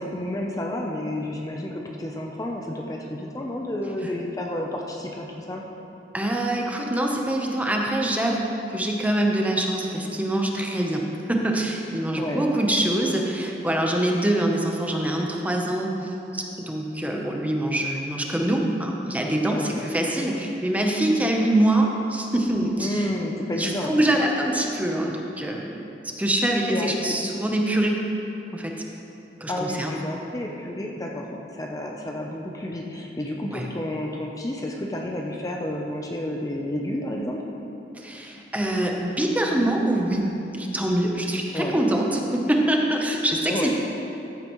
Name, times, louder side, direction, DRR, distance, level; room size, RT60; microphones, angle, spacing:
voice 1, 0.0-5.6 12.2-12.5 19.5-19.8 22.8-24.0 26.7-27.1 29.5-37.4 41.5-41.8 43.5-43.7, left 1 dB, 20° left, 0 dB, 0.6 m, -30 dB
voice 2, 6.1-11.0 11.3-23.0 23.5-28.0 28.5-28.7 29.4-30.0 33.5-33.7 37.9-40.3 40.5-43.7, right 1 dB, 10° right, 0 dB, 0.8 m, -24 dB
14.0 x 8.7 x 3.1 m, 2.9 s
head